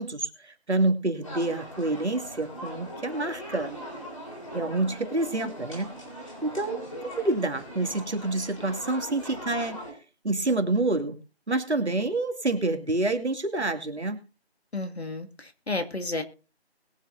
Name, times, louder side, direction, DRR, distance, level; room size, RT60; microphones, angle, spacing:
voice 1, 0.0-3.7 4.5-5.9 6.4-6.8 7.2-9.8 10.2-11.2 11.5-14.2, right 2 dB, 80° right, 6 dB, 2.3 m, -27 dB
sound 1, 1.2-9.9, equal, 30° left, 3.7 m, -40 dB
voice 2, 14.7-16.2, left 2 dB, 70° left, 7 dB, 1.9 m, -32 dB
21.0 x 7.5 x 2.6 m, 0.34 s
figure-of-eight pair, 175°, 33 cm